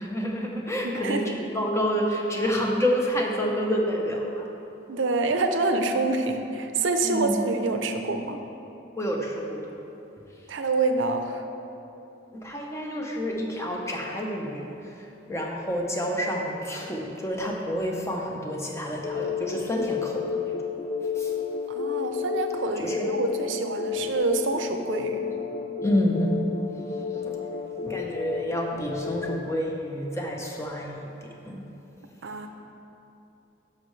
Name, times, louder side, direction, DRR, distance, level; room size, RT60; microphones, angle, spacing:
voice 1, 0.0-4.5 7.0-7.4 9.0-9.7 12.3-20.5 21.2-21.3 22.8-23.1 25.8-26.5 27.1-27.4 27.8-31.6, equal, 15° left, 0 dB, 0.7 m, -29 dB
voice 2, 0.8-1.2 4.9-8.4 10.5-11.4 21.7-25.3 32.2-32.5, right 3 dB, 75° right, 6 dB, 0.6 m, -27 dB
sound 1, 19.0-29.4, left 6 dB, 40° left, 0.3 m, -31 dB
12.5 x 5.5 x 3.2 m, 2.9 s
head